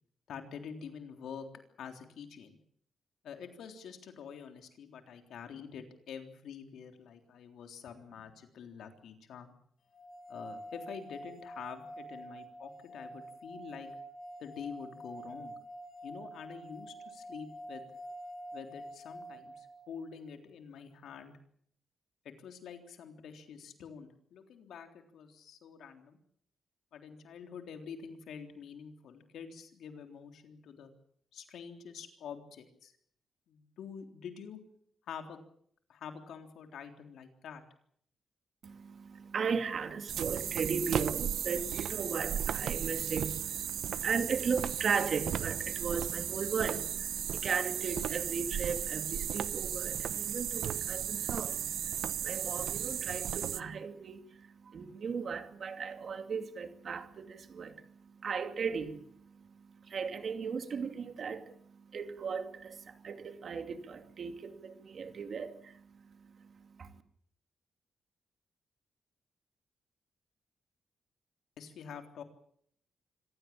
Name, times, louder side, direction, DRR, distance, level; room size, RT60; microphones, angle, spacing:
voice 1, 0.3-1.5 1.8-2.6 3.2-9.5 10.3-13.9 14.4-15.6 16.0-17.9 18.5-21.3 22.2-26.2 26.9-30.9 31.3-32.9 33.5-34.6 35.1-35.4 35.9-37.6 71.6-72.2, left 7 dB, 80° left, 3.6 m, -47 dB
sound 1, 9.9-20.1, right 1 dB, 40° left, 5.9 m, -47 dB
voice 2, 38.6-67.0, right 5 dB, 45° right, 2.5 m, -37 dB
sound 2, 40.1-53.6, right 10 dB, 90° right, 0.9 m, -35 dB
26.0 x 16.5 x 8.8 m
wide cardioid pair, 160°, 0 cm